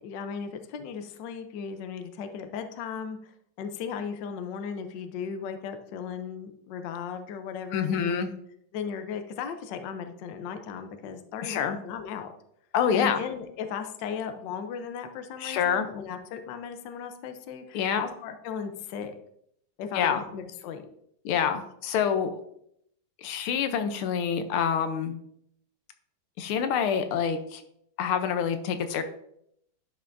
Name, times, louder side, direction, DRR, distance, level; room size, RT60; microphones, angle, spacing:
voice 1, 0.0-3.2 3.6-8.3 8.7-12.3 12.9-19.1 19.8-20.9, left 7 dB, 65° left, 7 dB, 1.2 m, -36 dB
voice 2, 7.7-8.3 11.4-11.8 12.7-13.2 15.4-15.9 17.7-18.0 19.9-20.2 21.2-22.3 23.2-25.1 26.4-27.6 28.0-29.0, left 7 dB, 85° left, 8 dB, 1.6 m, -26 dB
11.0 x 5.6 x 2.6 m, 0.72 s
omnidirectional pair, 2.3 m